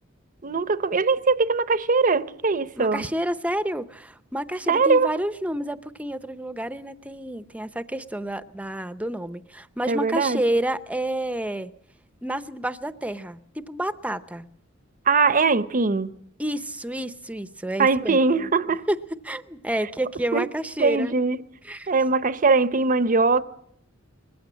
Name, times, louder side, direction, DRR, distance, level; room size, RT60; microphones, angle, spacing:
voice 1, 0.4-3.0 4.7-5.1 9.9-10.4 15.1-16.1 17.8-18.8 20.3-20.4 20.8-21.4 21.9-23.4, right 4 dB, 40° right, 0.8 m, -21 dB
voice 2, 2.8-11.7 12.2-14.5 16.4-18.2 18.9-19.0 19.2-21.1 21.6-21.9, right 1 dB, 5° right, 0.7 m, -29 dB
21.0 x 15.5 x 8.6 m
head